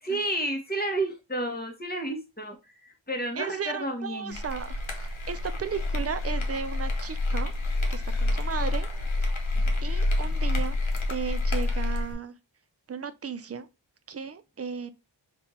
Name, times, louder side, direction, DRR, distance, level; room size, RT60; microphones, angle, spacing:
voice 1, 0.0-2.6 2.8-4.4, right 1 dB, 20° left, 1.2 m, -31 dB
voice 2, 3.4-7.5 7.9-8.9 9.3-9.4 9.8-10.8 11.1-12.3 12.9-13.7 14.1-14.9, right 6 dB, 35° right, 0.4 m, -35 dB
sound 1, 4.3-12.1, left 2 dB, 90° left, 0.9 m, -28 dB
3.5 x 2.5 x 4.1 m
wide cardioid pair, 50°, 46 cm